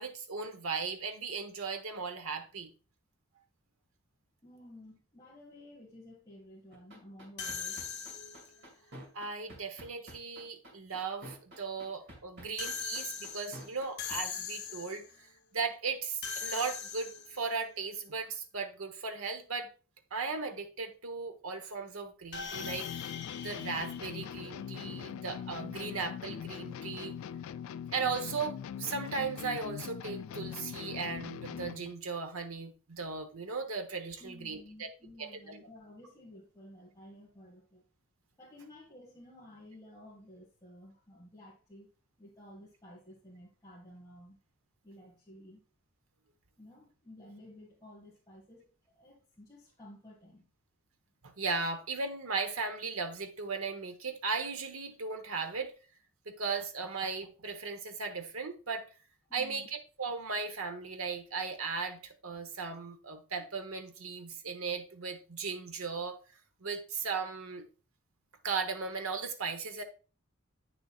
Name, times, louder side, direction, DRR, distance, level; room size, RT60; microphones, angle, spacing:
voice 1, 0.0-2.7 9.1-19.7 20.1-23.2 23.4-27.1 27.9-34.9 35.2-35.6 51.2-55.7 56.3-58.9 59.3-66.2 66.6-67.7 68.4-69.8, right 4 dB, 80° right, 1.0 m, -37 dB
voice 2, 4.4-7.8 11.8-11.9 12.4-12.5 34.2-37.8 38.4-41.9 42.2-44.4 44.8-45.6 46.6-50.4 59.3-59.7, left 1 dB, 15° left, 1.7 m, -53 dB
sound 1, 6.7-14.2, equal, 55° right, 2.3 m, -48 dB
sound 2, 7.4-8.6 12.6-15.1 16.2-17.5 22.3-24.9, left 7 dB, 50° left, 0.8 m, -41 dB
sound 3, 22.5-31.9, left 8 dB, 75° left, 0.3 m, -42 dB
9.1 x 6.7 x 2.4 m
head